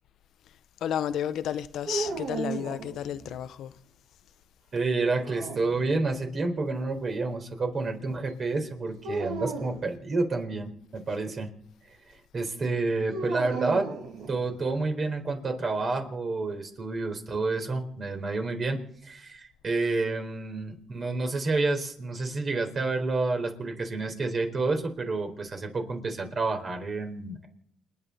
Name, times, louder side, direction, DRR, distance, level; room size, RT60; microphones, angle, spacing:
voice 1, 0.8-3.7, left 10 dB, 75° left, 0.8 m, -32 dB
sound 1, 1.9-3.4 5.1-6.2 9.0-9.8 13.1-14.7, right 4 dB, 80° right, 2.8 m, -35 dB
voice 2, 4.7-11.5 11.8-11.9 12.3-13.9 14.3-27.5, right 3 dB, 45° right, 4.2 m, -29 dB
29.0 x 9.9 x 4.2 m
cardioid pair, 90°, 0 cm